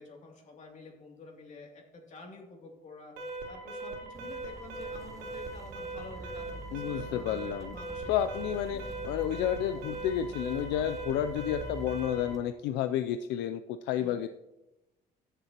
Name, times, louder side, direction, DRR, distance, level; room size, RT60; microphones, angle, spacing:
voice 1, 0.0-6.4 6.7-8.1 8.4-8.9 14.0-14.2, left 3 dB, 45° left, 0 dB, 2.7 m, -49 dB
Alarm, 3.2-12.4, right 3 dB, 85° right, 2.5 m, -40 dB
sound 1, 4.1-12.4, right 2 dB, 20° right, 0.8 m, -46 dB
voice 2, 6.7-7.8 8.1-14.3, left 10 dB, 90° left, 9 dB, 0.4 m, -31 dB
17.0 x 6.8 x 2.9 m, 1.0 s
cardioid pair, 110°, 17 cm